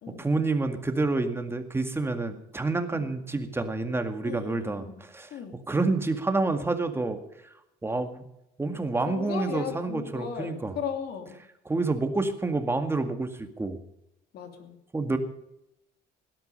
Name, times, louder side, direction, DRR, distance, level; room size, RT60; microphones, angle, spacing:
voice 1, 0.2-5.3 5.7-7.2 7.8-8.2 8.6-10.8 11.7-13.8 14.9-15.2, right 3 dB, 15° right, 7 dB, 2.0 m, -28 dB
voice 2, 4.2-5.0 5.3-5.6 9.1-11.4 14.3-14.7, left 7 dB, 70° left, 5 dB, 3.0 m, -36 dB
17.5 x 12.5 x 5.5 m, 0.84 s
cardioid pair, 110°, 17 cm